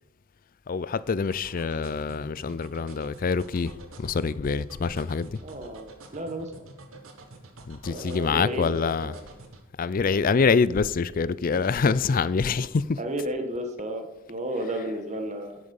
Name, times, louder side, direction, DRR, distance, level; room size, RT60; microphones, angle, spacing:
voice 1, 0.7-5.4 7.7-9.2 9.8-13.0, left 5 dB, 40° left, 0.4 m, -25 dB
sound 1, 1.3-9.6, right 2 dB, 80° right, 1.5 m, -47 dB
voice 2, 5.4-5.9 6.1-6.5 7.9-9.3 11.5-11.6 13.0-15.6, right 1 dB, 35° right, 1.6 m, -33 dB
10.0 x 8.8 x 5.4 m
head